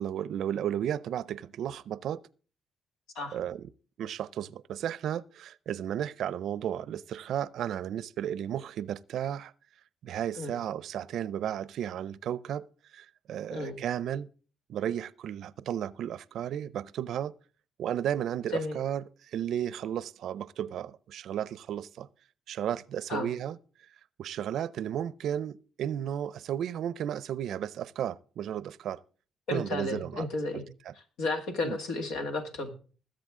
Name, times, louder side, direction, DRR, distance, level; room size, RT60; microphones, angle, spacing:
voice 1, 0.0-2.2 3.3-3.7 4.0-9.5 10.0-12.6 12.9-14.3 14.7-17.3 17.8-22.1 22.5-23.6 24.2-29.0 29.5-30.9 31.6-31.8, right 10 dB, 75° right, 0.5 m, -34 dB
voice 2, 29.5-30.6 31.2-32.7, left 2 dB, 90° left, 2.1 m, -33 dB
20.5 x 7.8 x 3.7 m
cardioid pair, 90°, 0 cm